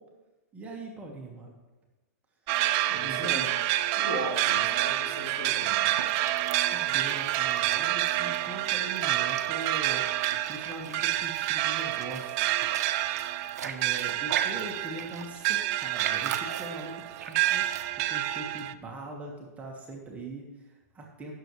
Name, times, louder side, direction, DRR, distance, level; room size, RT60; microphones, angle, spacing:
voice 1, 0.5-1.6 2.4-2.6 2.9-3.5 6.7-10.1 10.5-12.5 13.6-21.4, right 2 dB, 15° right, -1 dB, 1.5 m, -41 dB
sound 1, 2.5-18.7, right 14 dB, 40° right, 0.4 m, -28 dB
voice 2, 2.9-3.5 4.0-5.9, left 1 dB, 50° left, -2 dB, 3.5 m, -38 dB
sound 2, 5.8-17.9, right 8 dB, 75° right, 0.8 m, -41 dB
16.5 x 6.8 x 3.2 m, 1.1 s
hypercardioid pair, 130°, 9 cm